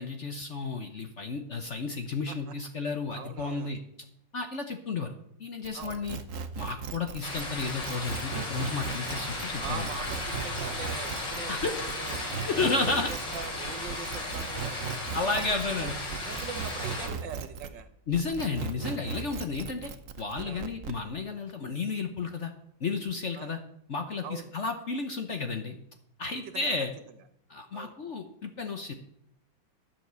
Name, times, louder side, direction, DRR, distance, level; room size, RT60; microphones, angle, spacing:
voice 1, 0.0-3.8 4.3-5.1 5.4-6.2 6.6-9.9 11.5-11.8 12.4-13.1 15.1-16.0 18.1-19.9 20.2-22.5 22.8-23.6 23.9-25.8 26.2-26.9 27.5-28.9, left 4 dB, 50° left, 6 dB, 1.0 m, -32 dB
voice 2, 3.1-3.7 5.7-6.0 9.6-12.2 12.5-14.8 15.2-15.9 16.2-17.9 20.4-20.7 23.3-23.6 24.2-24.5 26.5-26.7 27.7-27.9, right 6 dB, 70° right, 9 dB, 1.7 m, -42 dB
sound 1, 5.6-17.8 18.1-21.0, right 6 dB, 55° right, 1.0 m, -38 dB
sound 2, 7.2-17.1, left 2 dB, 70° left, 4.1 m, -35 dB
12.0 x 7.3 x 6.8 m, 0.73 s
omnidirectional pair, 2.1 m